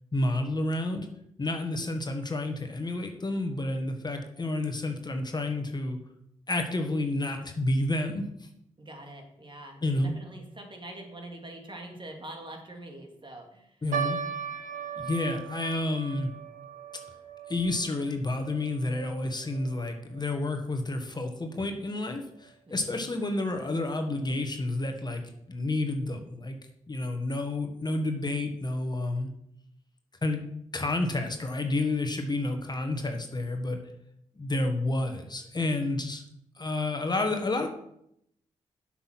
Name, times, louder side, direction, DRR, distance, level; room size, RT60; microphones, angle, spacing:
voice 1, 0.1-1.1 1.4-6.0 6.5-8.5 9.8-10.1 13.8-14.2 15.0-16.3 17.5-25.2 25.5-26.6 26.9-29.3 30.2-30.4 30.7-33.8 34.3-36.2 36.6-37.7, left 2 dB, 30° left, 5 dB, 1.5 m, -30 dB
voice 2, 8.8-13.8 22.7-23.2, right 1 dB, 40° right, 2 dB, 2.5 m, -44 dB
sound 1, 13.9-20.4 20.7-20.8 21.5-21.8 22.4-22.5 22.9-23.0, right 7 dB, 75° right, 1.3 m, -38 dB
7.8 x 6.2 x 6.0 m, 0.76 s
supercardioid pair, 50°, 13 cm